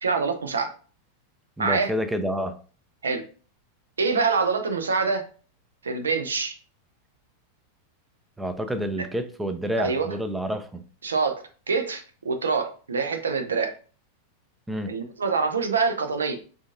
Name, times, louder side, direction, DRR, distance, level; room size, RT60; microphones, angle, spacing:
voice 1, 0.0-0.7 1.6-1.9 3.0-3.2 4.0-5.3 5.8-6.5 9.8-10.1 11.0-13.7 14.9-16.4, right 4 dB, 70° right, 7 dB, 0.6 m, -25 dB
voice 2, 1.6-2.6 8.4-10.8 14.7-14.9, equal, 5° right, 9 dB, 0.4 m, -28 dB
6.2 x 2.5 x 2.5 m, 0.40 s
figure-of-eight pair, 90°, 0 cm